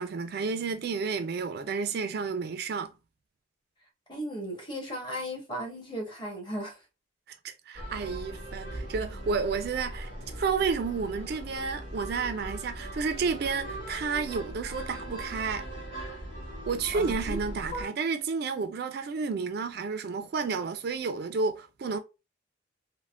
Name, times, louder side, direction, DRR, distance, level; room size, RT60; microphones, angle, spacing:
voice 1, 0.0-2.9 7.4-10.1 10.4-15.7 16.7-22.0, right 5 dB, 50° right, 0.3 m, -31 dB
voice 2, 4.1-6.8 16.9-17.4 17.7-17.9, equal, 25° left, 1.0 m, -36 dB
sound 1, 7.7-17.8, right 1 dB, 45° left, 1.6 m, -39 dB
3.3 x 2.1 x 2.4 m
head